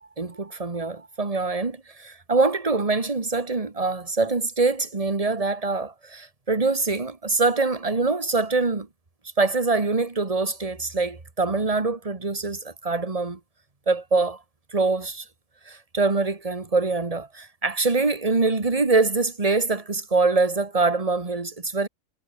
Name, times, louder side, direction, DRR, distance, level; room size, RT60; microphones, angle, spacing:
voice 1, 0.0-8.9 9.4-13.4 13.9-14.4 14.7-15.2 15.6-21.9, right 3 dB, 25° right, 1.8 m, -24 dB
omnidirectional pair, 1.4 m